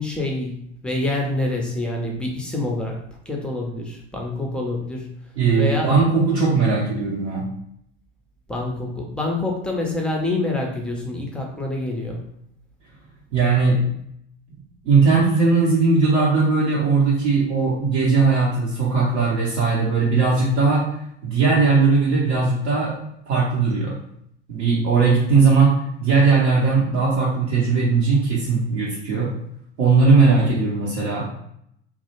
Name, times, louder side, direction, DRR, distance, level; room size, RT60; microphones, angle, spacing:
voice 1, 0.0-3.0 3.3-5.1 5.6-5.9 8.5-12.2, left 2 dB, 5° left, -1 dB, 0.5 m, -26 dB
voice 2, 5.4-7.4 13.3-13.8 14.8-20.8 21.2-23.0 23.3-24.0 24.5-29.3 29.8-31.3, right 4 dB, 65° right, -7 dB, 0.8 m, -18 dB
2.4 x 2.0 x 2.9 m, 0.72 s
figure-of-eight pair, 80°, 35 cm